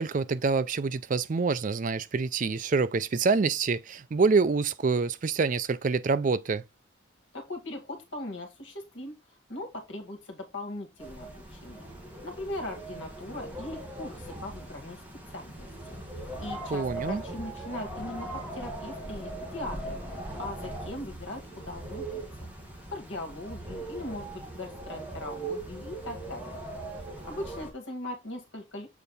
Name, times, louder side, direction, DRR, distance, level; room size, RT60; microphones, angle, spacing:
voice 1, 0.0-6.6 16.7-17.2, right 4 dB, 40° right, 0.4 m, -26 dB
voice 2, 7.3-9.2 9.5-11.9 12.2-15.0 15.3-22.2 22.9-26.6 27.2-28.9, left 1 dB, 70° left, 1.9 m, -40 dB
sound 1, 11.0-27.7, right 2 dB, 10° right, 1.5 m, -40 dB
7.2 x 3.4 x 4.0 m
head